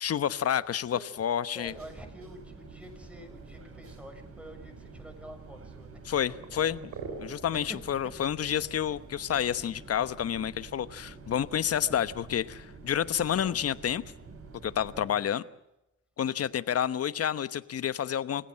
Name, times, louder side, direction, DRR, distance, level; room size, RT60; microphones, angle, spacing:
voice 1, 0.0-1.7 6.1-6.9 7.2-14.0 14.6-15.4 16.2-18.5, left 9 dB, 55° left, 1.1 m, -29 dB
voice 2, 0.5-1.1 1.5-6.0 7.5-8.1 11.8-12.2 12.9-13.7 14.9-15.3 16.3-16.5, equal, 5° right, 6.7 m, -48 dB
sound 1, 1.6-15.1, right 4 dB, 50° right, 5.4 m, -48 dB
sound 2, 2.2-15.1, right 4 dB, 80° right, 5.8 m, -52 dB
28.5 x 15.5 x 7.7 m
cardioid pair, 90°, 30 cm